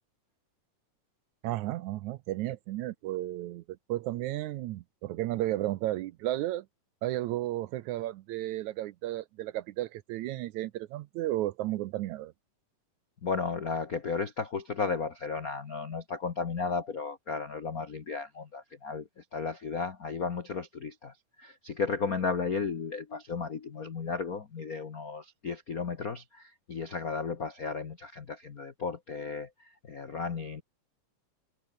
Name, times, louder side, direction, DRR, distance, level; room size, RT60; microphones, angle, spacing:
voice 1, 1.4-3.6 3.9-6.7 7.0-12.3, right 15 dB, 75° right, 1.9 m, -33 dB
voice 2, 13.2-30.6, left 5 dB, 60° left, 0.9 m, -34 dB
omnidirectional pair, 3.7 m